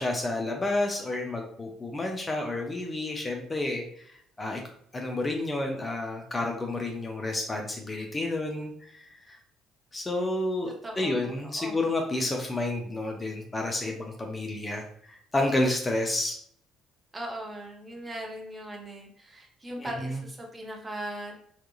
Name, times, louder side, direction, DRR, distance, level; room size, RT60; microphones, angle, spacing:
voice 1, 0.0-4.1 4.4-4.6 4.9-9.4 9.9-16.4 19.8-20.2, left 2 dB, 25° left, 2 dB, 0.4 m, -30 dB
voice 2, 10.8-11.8 17.1-21.3, right 1 dB, 20° right, -1 dB, 0.7 m, -39 dB
2.8 x 2.3 x 2.3 m, 0.65 s
figure-of-eight pair, 50°, 0 cm